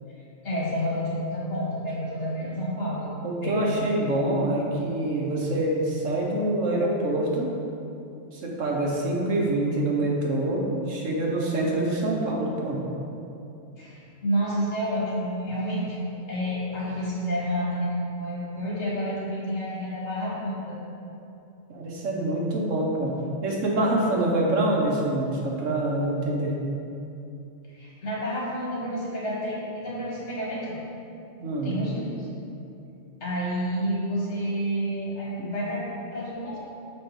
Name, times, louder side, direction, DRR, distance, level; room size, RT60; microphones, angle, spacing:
voice 1, 0.4-3.1 3.4-3.8 13.8-20.8 27.7-30.8 31.6-32.0 33.2-36.6, equal, 60° left, -6 dB, 1.9 m, -29 dB
voice 2, 3.2-7.5 8.3-12.8 21.7-23.2 23.4-26.5 31.4-31.7 35.4-35.5, right 1 dB, 75° right, -2 dB, 1.3 m, -26 dB
6.5 x 4.2 x 5.2 m, 2.8 s
omnidirectional pair, 1.3 m